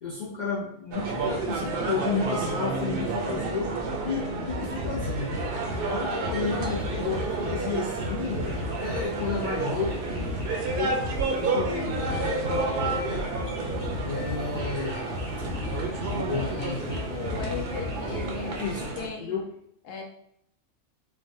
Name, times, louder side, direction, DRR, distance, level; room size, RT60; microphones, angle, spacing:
voice 1, 0.0-3.7 4.0-5.3 5.8-8.5 8.8-10.0 10.7-11.0 11.4-13.4 14.0-15.2 16.0-16.8 18.5-18.9 19.2-19.5, left 5 dB, 65° left, -5 dB, 0.4 m, -32 dB
sound 1, 0.9-19.1, right 3 dB, 65° right, 0.6 m, -31 dB
sound 2, 4.5-18.6, left 2 dB, 90° right, 1.2 m, -36 dB
sound 3, 6.5-18.9, right 1 dB, 30° left, 1.2 m, -45 dB
voice 2, 16.4-18.6 19.0-19.4 19.8-20.0, left 5 dB, 80° left, 1 dB, 1.0 m, -38 dB
3.2 x 2.1 x 2.6 m, 0.70 s
omnidirectional pair, 1.3 m